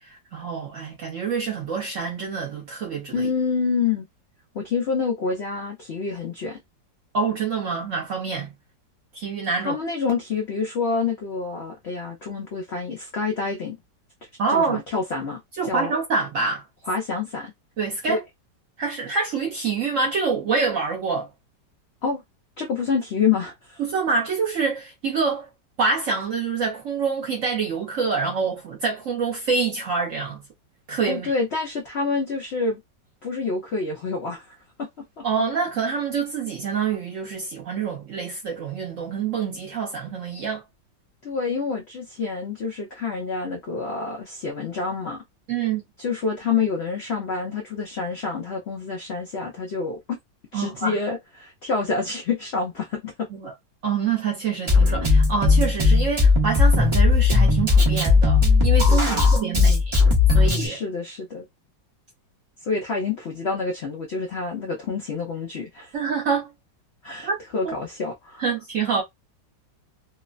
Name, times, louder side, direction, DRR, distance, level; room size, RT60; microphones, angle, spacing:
voice 1, 0.0-3.3 7.1-8.5 9.1-9.8 14.4-14.8 15.6-16.6 17.8-18.2 18.8-21.3 23.8-25.5 25.8-30.4 30.9-31.3 35.2-40.6 45.5-45.8 50.5-51.0 53.3-53.5 53.8-59.8 60.3-60.8 65.9-66.5 67.2-67.4 67.6-67.7 68.4-69.0, right 5 dB, 65° right, 0.8 m, -26 dB
voice 2, 3.1-4.1 4.5-6.6 9.6-13.8 14.5-15.9 16.9-17.5 22.0-22.2 22.6-23.8 31.1-32.8 33.2-34.9 35.2-35.3 41.2-45.2 46.0-50.2 50.5-53.3 58.9-59.8 60.6-61.5 62.6-65.9 67.0-68.4, left 4 dB, 85° left, 0.5 m, -27 dB
Drum kit, 54.7-60.7, left 4 dB, 40° right, 0.4 m, -17 dB
3.1 x 2.0 x 2.4 m
omnidirectional pair, 2.0 m